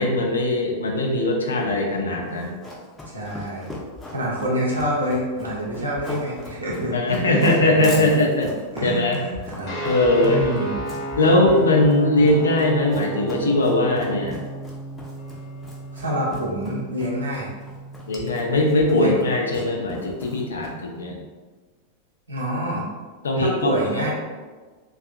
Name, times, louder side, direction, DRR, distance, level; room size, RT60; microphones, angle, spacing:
voice 1, 0.0-2.6 6.9-8.5 8.8-9.2 9.8-10.4 11.2-14.4 18.1-21.2 23.2-24.1, left 2 dB, 70° left, 0 dB, 0.4 m, -20 dB
Run, 2.3-20.9, left 2 dB, 10° left, 0.6 m, -39 dB
voice 2, 3.1-3.8 4.1-8.0 8.7-9.7 10.2-10.8 12.1-12.3 15.9-17.5 18.5-18.6 18.9-19.2 22.3-22.8 23.4-24.1, equal, 80° right, -5 dB, 0.7 m, -27 dB
sound 1, 9.6-18.6, right 2 dB, 40° left, 0.9 m, -34 dB
sound 2, 12.2-15.2, right 1 dB, 30° right, 0.6 m, -35 dB
2.6 x 2.4 x 2.4 m, 1.4 s
figure-of-eight pair, 90°, 0 cm